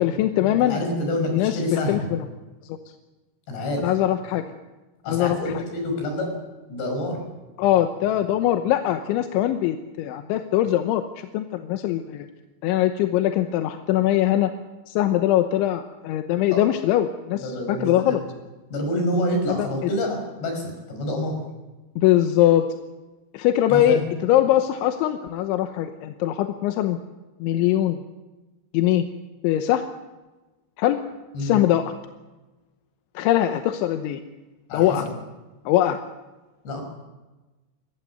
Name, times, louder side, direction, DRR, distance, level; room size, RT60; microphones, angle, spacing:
voice 1, 0.0-0.8 1.3-2.2 2.6-2.8 3.8-4.4 5.1-5.4 7.6-12.3 12.6-14.5 14.9-18.2 19.5-19.7 22.0-22.7 23.3-27.0 27.4-28.0 28.7-29.0 29.4-29.9 30.8-31.0 31.4-31.9 33.2-34.2 34.7-35.1 35.7-36.0, left 12 dB, 85° left, 7 dB, 3.3 m, -22 dB
voice 2, 0.6-2.1 3.5-3.9 5.0-6.4 6.7-7.2 16.5-16.6 17.3-18.3 18.7-21.4 23.7-24.0 31.3-31.6 34.7-35.1 36.6-36.8, left 1 dB, 65° left, 3 dB, 7.7 m, -27 dB
22.0 x 17.0 x 9.6 m, 1.2 s
omnidirectional pair, 5.4 m